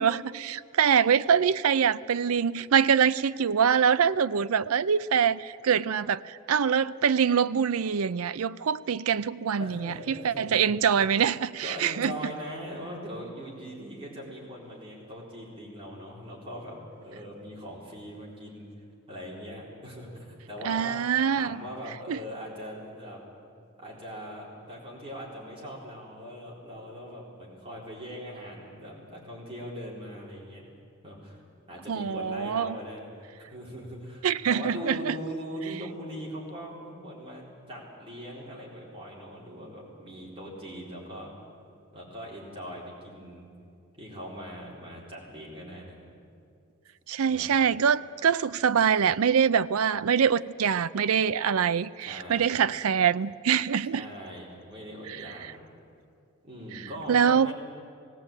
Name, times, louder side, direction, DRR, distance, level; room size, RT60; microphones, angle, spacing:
voice 1, 0.0-12.1 20.7-21.6 22.1-22.2 31.9-32.7 34.2-35.1 47.1-54.0 57.1-57.5, right 7 dB, 75° right, 0.5 m, -24 dB
voice 2, 9.6-10.7 11.6-21.0 21.4-23.2 23.8-30.7 31.0-31.4 31.7-41.3 41.9-43.5 44.0-46.0 47.3-47.5 52.1-52.6 53.9-55.5 56.4-57.5, equal, 25° right, 3.9 m, -41 dB
18.5 x 17.0 x 8.9 m
head